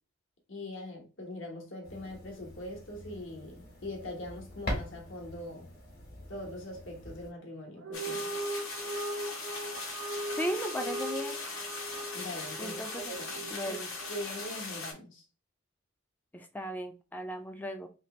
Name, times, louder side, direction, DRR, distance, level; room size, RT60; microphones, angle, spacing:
voice 1, 0.5-5.7 6.3-8.4 12.1-13.8 14.1-15.2, left 1 dB, 60° left, 1.3 m, -42 dB
sound 1, 1.8-7.3, equal, 45° left, 1.3 m, -42 dB
sound 2, 7.7-14.3, right 1 dB, 90° right, 1.0 m, -39 dB
sound 3, 7.9-14.9, left 3 dB, 80° left, 1.3 m, -40 dB
voice 2, 10.4-11.4 12.6-13.1 13.5-13.9 16.3-17.9, equal, 10° left, 0.4 m, -36 dB
3.4 x 2.9 x 3.0 m
head